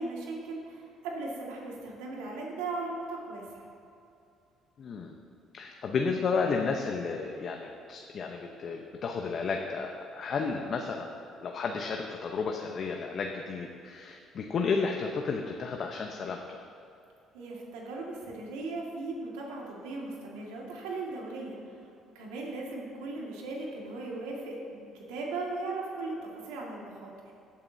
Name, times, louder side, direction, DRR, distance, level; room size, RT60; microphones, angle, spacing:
voice 1, 0.0-3.6 17.3-27.3, right 3 dB, 90° right, -2 dB, 1.9 m, -38 dB
voice 2, 4.8-5.1 5.5-11.1 11.4-16.6, left 5 dB, 55° left, 2 dB, 0.8 m, -32 dB
16.5 x 8.7 x 2.7 m, 2.7 s
supercardioid pair, 70°, 0 cm